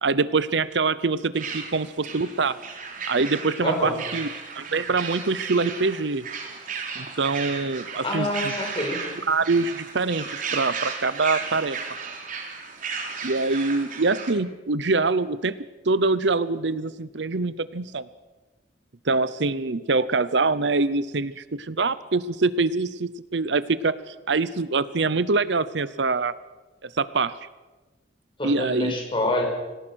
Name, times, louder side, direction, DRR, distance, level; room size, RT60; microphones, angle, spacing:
voice 1, 0.0-2.6 3.1-4.3 4.6-6.2 6.9-8.5 9.3-11.8 13.2-15.6 15.9-18.1 19.0-26.3 26.8-27.3 28.4-28.9, right 3 dB, 70° right, 16 dB, 0.8 m, -24 dB
sound 1, 1.3-14.3, right 5 dB, 50° right, 3.5 m, -35 dB
voice 2, 3.6-4.0 8.0-9.0 28.4-29.5, left 1 dB, 30° left, 1 dB, 6.0 m, -26 dB
26.0 x 18.0 x 6.4 m, 1.2 s
head